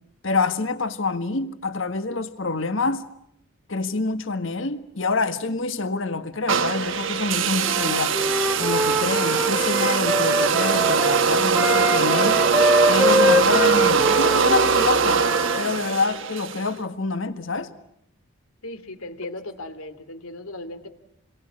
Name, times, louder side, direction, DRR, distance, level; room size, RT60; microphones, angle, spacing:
voice 1, 0.2-3.0 3.7-8.2 8.6-12.4 12.9-15.2 15.6-17.7, left 3 dB, 60° left, 1.7 m, -26 dB
sound 1, 6.5-16.7, right 5 dB, 60° right, 1.3 m, -21 dB
Wind instrument woodwind instrument, 7.6-15.6, equal, 10° right, 1.4 m, -24 dB
voice 2, 18.6-20.9, left 2 dB, 80° left, 2.7 m, -37 dB
29.0 x 23.0 x 8.7 m
head